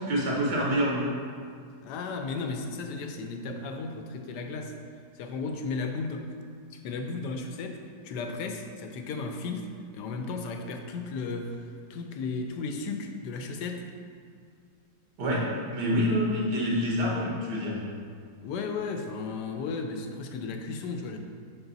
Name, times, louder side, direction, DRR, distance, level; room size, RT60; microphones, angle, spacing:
voice 1, 0.1-1.1 15.2-17.8, equal, 80° right, -4 dB, 1.8 m, -27 dB
voice 2, 1.8-4.7 5.2-6.3 6.7-13.8 18.4-21.2, left 4 dB, 85° left, 5 dB, 1.2 m, -35 dB
7.0 x 4.0 x 4.0 m, 2.2 s
omnidirectional pair, 1.8 m